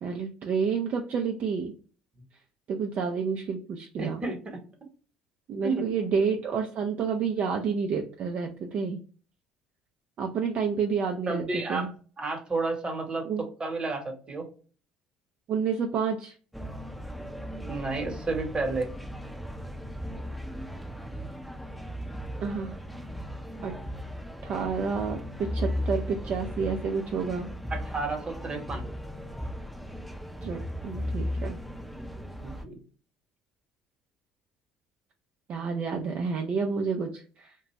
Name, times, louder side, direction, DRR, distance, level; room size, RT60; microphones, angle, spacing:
voice 1, 0.0-1.7 2.7-4.2 5.5-9.0 10.2-11.9 13.2-13.4 15.5-16.3 22.4-22.8 23.6-23.7 24.4-27.5 30.4-31.6 35.5-37.5, right 5 dB, 50° right, 2 dB, 0.4 m, -29 dB
voice 2, 4.0-4.6 5.6-5.9 11.3-11.9 12.2-14.5 17.6-18.9 27.7-28.8 32.4-32.8, right 3 dB, 30° right, 3 dB, 1.0 m, -31 dB
sound 1, 16.5-32.6, equal, ahead, 0.6 m, -36 dB
2.4 x 2.2 x 3.0 m, 0.39 s
hypercardioid pair, 65°, 3 cm